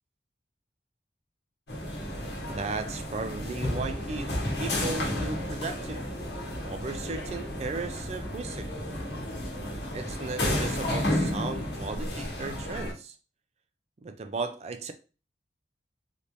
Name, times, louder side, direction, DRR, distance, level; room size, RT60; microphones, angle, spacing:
sound 1, 1.7-12.9, left 1 dB, 60° left, 1.0 m, -32 dB
voice 1, 2.5-6.1 6.6-8.7 9.9-13.2 14.0-14.9, right 3 dB, 35° right, 0.4 m, -36 dB
3.3 x 2.9 x 2.6 m
head